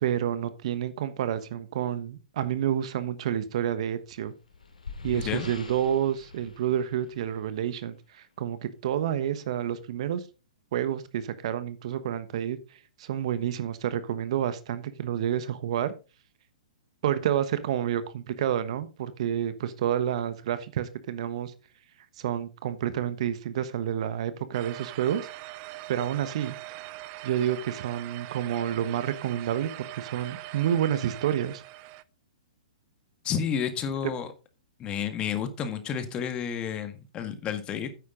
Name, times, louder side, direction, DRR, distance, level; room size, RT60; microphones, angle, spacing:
voice 1, 0.0-4.3 5.0-10.2 10.7-15.9 17.0-21.5 22.2-25.2 25.9-26.6 27.2-31.6, right 10 dB, 55° right, 1.2 m, -29 dB
sound 1, 4.0-7.7, left 5 dB, 85° left, 2.3 m, -43 dB
voice 2, 5.1-5.5 33.2-34.3 34.8-37.9, left 8 dB, 25° left, 1.7 m, -31 dB
sound 2, 24.5-32.0, right 18 dB, 40° right, 0.6 m, -42 dB
9.6 x 8.4 x 3.8 m
hypercardioid pair, 120°, 4 cm